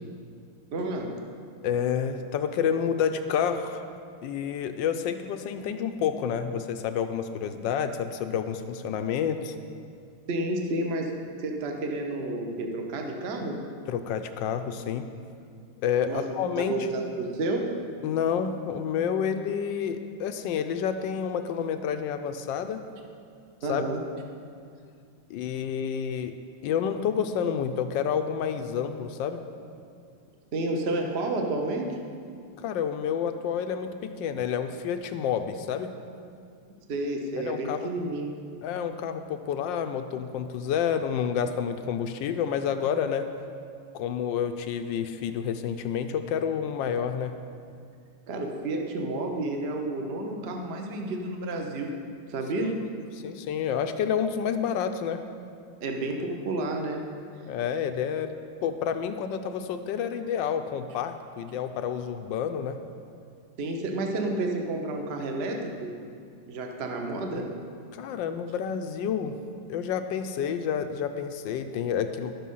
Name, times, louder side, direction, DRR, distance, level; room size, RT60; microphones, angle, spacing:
voice 1, 0.7-1.1 10.3-11.1 11.4-13.6 16.1-16.3 16.6-17.7 23.6-24.0 30.5-32.0 36.9-38.3 48.3-51.9 52.3-52.8 55.8-57.1 63.6-66.0 66.5-67.5, right 2 dB, 45° right, 2 dB, 0.8 m, -30 dB
voice 2, 1.6-3.8 4.2-9.5 13.9-15.1 15.8-16.8 18.0-22.8 23.7-23.9 25.3-26.3 26.6-29.4 32.6-35.9 37.4-37.9 38.6-43.3 43.9-47.3 53.2-55.2 57.5-58.3 58.6-62.8 67.9-69.4 69.7-72.3, left 8 dB, 75° left, 8 dB, 1.1 m, -29 dB
11.5 x 7.5 x 5.5 m, 2.3 s
omnidirectional pair, 2.3 m